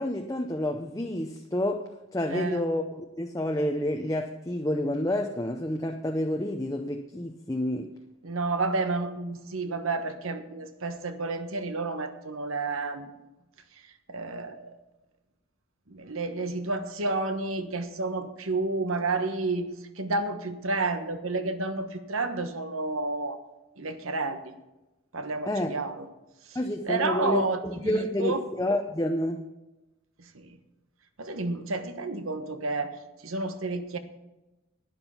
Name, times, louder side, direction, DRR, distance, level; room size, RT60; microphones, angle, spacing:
voice 1, 0.0-7.9 25.5-25.7 26.5-29.5, left 1 dB, 15° left, 4 dB, 0.6 m, -29 dB
voice 2, 2.3-2.6 8.2-13.1 14.1-14.7 15.9-19.7 20.0-23.4 23.8-24.5 25.1-26.1 26.5-26.6 26.8-28.4 30.2-30.5 31.2-34.0, right 3 dB, 85° right, 9 dB, 1.3 m, -30 dB
11.5 x 9.8 x 5.7 m, 1.0 s
head